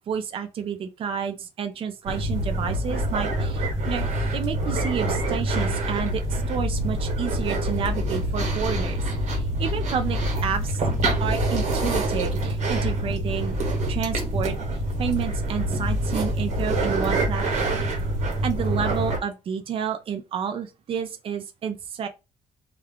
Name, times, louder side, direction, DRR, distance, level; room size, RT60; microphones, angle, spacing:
voice 1, 0.1-9.0 9.3-10.8 11.2-13.5 13.9-14.6 15.0-17.9 18.4-22.1, right 7 dB, 50° right, 0.5 m, -30 dB
sound 1, 2.1-19.2, right 1 dB, 85° right, 1.1 m, -26 dB
2.3 x 2.2 x 3.5 m
cardioid pair, 135°, 12 cm